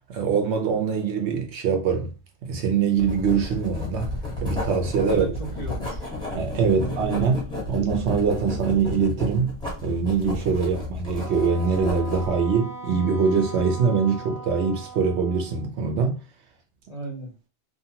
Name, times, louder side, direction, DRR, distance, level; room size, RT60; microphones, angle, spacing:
voice 1, 0.1-2.1 2.4-5.2 6.3-9.6 9.8-16.2, right 5 dB, 70° right, 0.8 m, -23 dB
Writing, 3.0-12.3, left 2 dB, 5° left, 0.8 m, -33 dB
voice 2, 5.1-6.1 6.7-7.1 16.9-17.3, right 2 dB, 40° left, 0.6 m, -36 dB
Wind instrument woodwind instrument, 11.2-15.7, right 2 dB, 25° right, 0.5 m, -40 dB
2.7 x 2.2 x 2.8 m
omnidirectional pair, 1.3 m